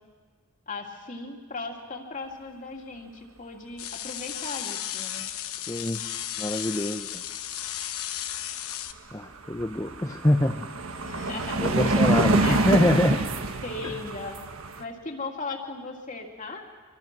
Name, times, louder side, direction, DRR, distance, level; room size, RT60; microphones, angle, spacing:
voice 1, 0.7-5.3 11.0-12.6 13.6-14.4 14.8-16.7, left 3 dB, 35° left, 2 dB, 2.7 m, -37 dB
sound 1, 3.8-8.9, left 11 dB, 80° left, 1.1 m, -34 dB
voice 2, 5.7-6.0 6.4-7.2 9.1-10.7 11.6-13.2, left 1 dB, 15° left, 3 dB, 0.7 m, -25 dB
sound 2, 8.7-8.8 9.1-14.8, right 2 dB, 70° right, 1.5 m, -26 dB
25.5 x 25.5 x 6.1 m, 1.5 s
head